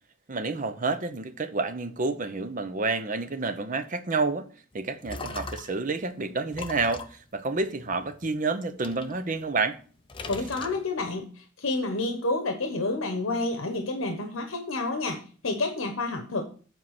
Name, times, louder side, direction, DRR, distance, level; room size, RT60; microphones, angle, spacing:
voice 1, 0.3-4.5 4.7-9.8, right 3 dB, 40° right, 0.7 m, -29 dB
sound 1, 4.7-5.9 6.5-8.3 8.8-9.8 10.1-11.2, left 3 dB, 25° left, 0.6 m, -40 dB
voice 2, 10.3-16.4, left 2 dB, 80° left, 1.0 m, -29 dB
7.5 x 4.6 x 5.8 m
head